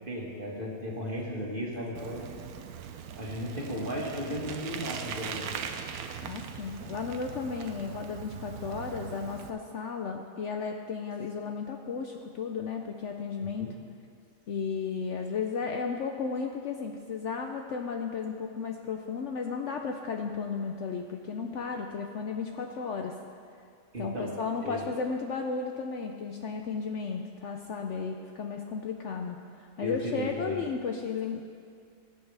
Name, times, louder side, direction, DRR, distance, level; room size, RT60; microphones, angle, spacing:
voice 1, 0.1-2.3 3.2-5.6 13.6-13.7 23.9-24.3 24.6-24.9 29.8-30.6, equal, 35° right, -3 dB, 1.9 m, -35 dB
Bicycle, 1.9-9.5, right 7 dB, 75° right, 1.2 m, -40 dB
voice 2, 6.2-13.7 14.5-23.2 24.0-31.4, left 5 dB, 60° left, 3 dB, 0.8 m, -34 dB
19.0 x 8.5 x 3.4 m, 2.3 s
omnidirectional pair, 1.6 m